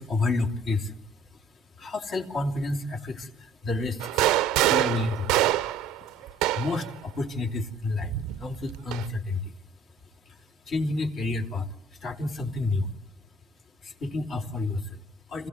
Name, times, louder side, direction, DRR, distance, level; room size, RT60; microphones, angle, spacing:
voice 1, 0.0-5.4 6.0-6.1 6.5-9.6 9.9-10.0 10.2-12.9 13.8-15.5, left 2 dB, 60° left, 1 dB, 3.3 m, -31 dB
sound 1, 4.0-6.9 8.0-9.1, right 15 dB, 80° right, 0.8 m, -25 dB
26.5 x 16.0 x 8.1 m, 0.85 s
supercardioid pair, 80°, 0 cm